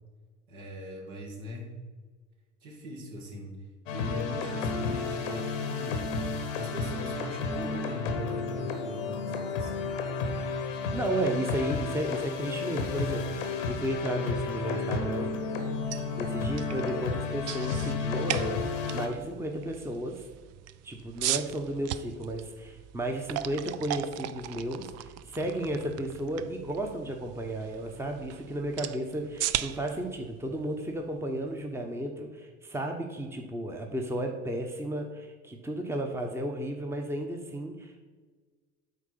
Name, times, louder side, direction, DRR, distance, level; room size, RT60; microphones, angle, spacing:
voice 1, 0.5-1.7 2.6-3.6 3.9-6.1 6.5-10.0, left 1 dB, 65° right, 0 dB, 2.3 m, -40 dB
sound 1, 3.9-19.1, left 4 dB, 80° left, 1.1 m, -32 dB
voice 2, 10.9-15.3 16.2-20.2 20.8-38.0, right 1 dB, 5° right, 3 dB, 1.1 m, -33 dB
sound 2, 15.7-31.6, right 12 dB, 45° right, 0.5 m, -38 dB
8.4 x 4.4 x 5.8 m, 1.4 s
hypercardioid pair, 60°, 37 cm